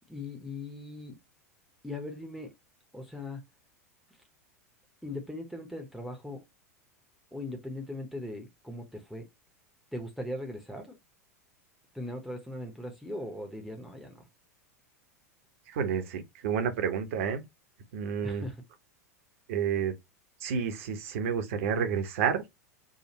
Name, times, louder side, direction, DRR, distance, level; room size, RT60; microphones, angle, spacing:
voice 1, 0.1-1.2 1.8-2.5 2.9-3.4 5.0-6.4 7.3-9.3 9.9-11.0 11.9-14.3 18.2-18.6, left 1 dB, ahead, 0.8 m, -39 dB
voice 2, 15.7-17.4 17.9-18.5 19.5-19.9 20.4-22.4, right 7 dB, 55° right, 0.9 m, -30 dB
4.9 x 2.3 x 2.9 m
figure-of-eight pair, 85°, 9 cm